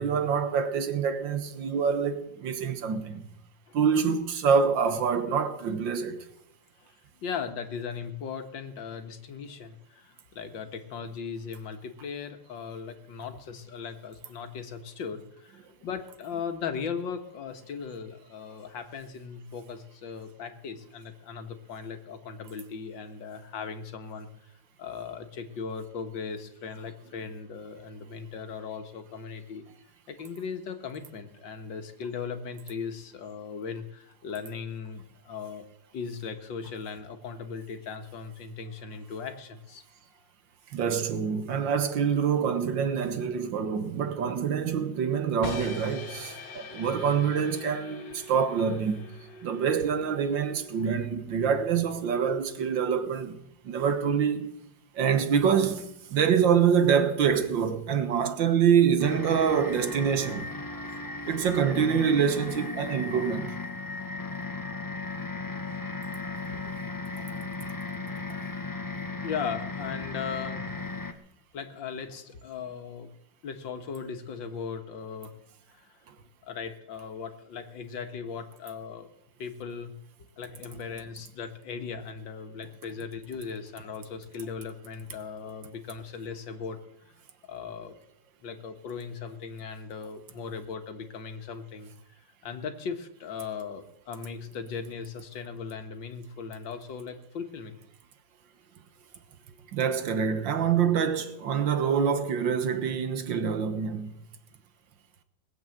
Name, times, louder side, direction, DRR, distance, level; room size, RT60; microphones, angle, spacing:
voice 1, 0.0-3.2 3.7-6.3 40.7-49.1 49.4-53.4 53.6-54.5 55.0-60.5 61.3-63.5 99.7-104.1, right 7 dB, 80° right, 1.9 m, -26 dB
voice 2, 7.2-24.3 24.8-29.7 30.1-35.6 35.9-39.8 46.5-46.8 58.9-59.0 65.3-65.4 66.5-66.7 68.1-68.3 69.2-70.7 71.5-73.1 73.4-75.4 75.7-75.9 76.4-79.1 79.4-79.9 80.4-86.8 87.5-88.0 88.4-91.9 92.4-97.8, left 6 dB, 85° left, 2.1 m, -38 dB
sound 1, 45.4-51.4, left 3 dB, 70° left, 2.1 m, -43 dB
sound 2, 59.0-71.1, left 3 dB, 20° left, 0.5 m, -36 dB
20.0 x 8.0 x 7.7 m
omnidirectional pair, 2.0 m